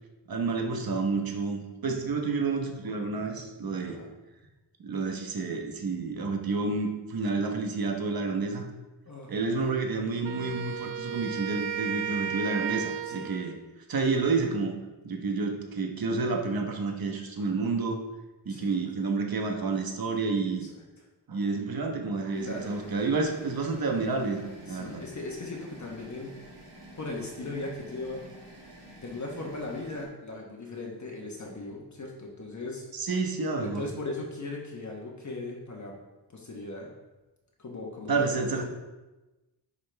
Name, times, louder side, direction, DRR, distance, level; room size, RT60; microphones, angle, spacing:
voice 1, 0.3-4.0 4.8-8.7 9.3-13.5 13.9-14.8 15.0-18.0 18.4-20.7 21.3-25.0 32.9-33.9 38.1-38.6, right 4 dB, 55° right, 3 dB, 1.2 m, -29 dB
voice 2, 9.1-9.5 13.1-13.3 18.5-18.8 20.5-20.6 22.4-22.7 24.7-26.3 27.0-28.2 29.0-32.8 33.6-35.9 36.3-36.9 37.6-38.5, left 2 dB, 40° left, -1 dB, 1.2 m, -38 dB
Wind instrument woodwind instrument, 10.2-13.6, right 8 dB, 85° right, 0.6 m, -34 dB
sound 1, 22.3-30.0, right 1 dB, 70° right, 2.2 m, -49 dB
9.9 x 5.7 x 3.4 m, 1.1 s
wide cardioid pair, 180°, 43 cm